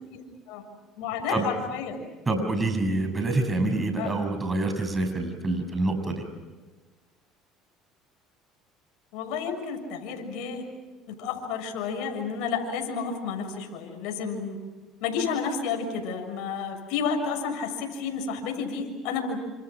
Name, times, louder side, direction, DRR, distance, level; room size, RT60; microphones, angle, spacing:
voice 1, 1.0-2.1 4.0-4.1 5.6-5.7 9.1-10.6 11.1-14.6 15.0-19.4, left 5 dB, 75° left, 3 dB, 6.7 m, -31 dB
voice 2, 2.3-6.2, right 2 dB, 20° right, 6 dB, 6.4 m, -26 dB
29.5 x 27.5 x 6.1 m, 1.3 s
supercardioid pair, 95°, 0 cm